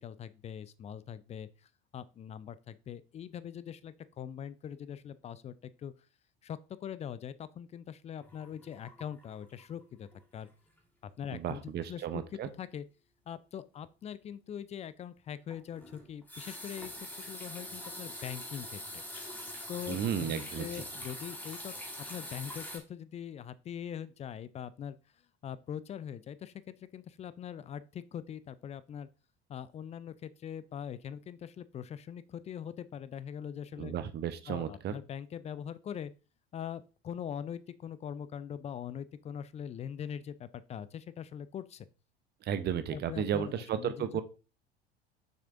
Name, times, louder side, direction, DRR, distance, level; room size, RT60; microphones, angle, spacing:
voice 1, 0.0-1.5 1.9-5.9 6.4-10.5 11.0-12.8 13.3-19.0 19.7-25.0 25.4-29.1 29.5-33.9 34.5-36.1 36.5-41.9 42.9-44.2, left 9 dB, 20° left, 0.4 m, -42 dB
sound 1, 8.2-9.8 10.1-10.4 10.8-10.9 15.5-22.8, left 1 dB, 5° left, 2.0 m, -44 dB
voice 2, 11.3-12.5 19.9-20.7 33.8-34.9 42.4-44.2, right 9 dB, 35° right, 0.8 m, -33 dB
6.6 x 6.4 x 2.5 m
figure-of-eight pair, 70°, 31 cm